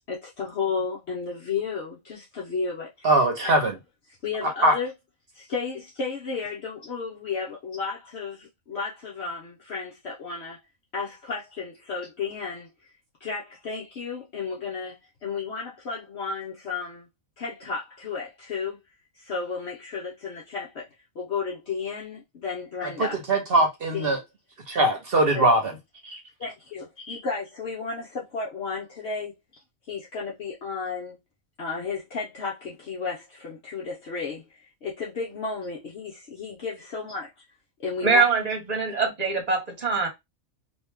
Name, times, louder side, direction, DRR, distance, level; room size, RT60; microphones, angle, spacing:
voice 1, 0.0-3.2 3.4-3.6 4.1-4.9 5.3-10.6 10.9-12.9 13.2-17.1 17.4-18.8 19.1-20.9 21.1-23.2 23.9-24.2 25.3-25.4 26.4-29.4 29.9-31.2 31.6-37.3 37.8-38.3, left 5 dB, 60° left, 1.0 m, -33 dB
voice 2, 3.0-3.7 4.4-4.8 23.0-24.2 24.7-25.7 26.0-26.2, right 2 dB, 50° right, 1.0 m, -21 dB
voice 3, 38.0-40.1, right 4 dB, 35° right, 1.2 m, -23 dB
3.0 x 2.7 x 3.4 m
omnidirectional pair, 1.4 m